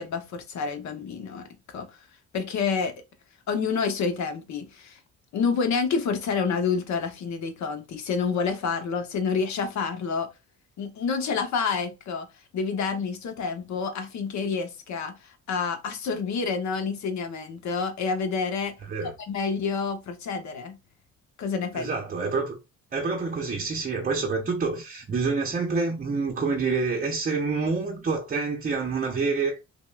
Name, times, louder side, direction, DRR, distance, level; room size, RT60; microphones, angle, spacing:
voice 1, 0.0-1.9 2.3-2.9 3.5-5.0 5.3-10.3 10.8-12.3 12.5-18.7 19.3-20.8 21.4-21.9, left 5 dB, 65° left, 0.8 m, -28 dB
voice 2, 18.8-19.1 21.7-22.6 22.9-29.6, right 4 dB, 30° right, 0.6 m, -27 dB
5.2 x 2.1 x 2.3 m
cardioid pair, 90°, 30 cm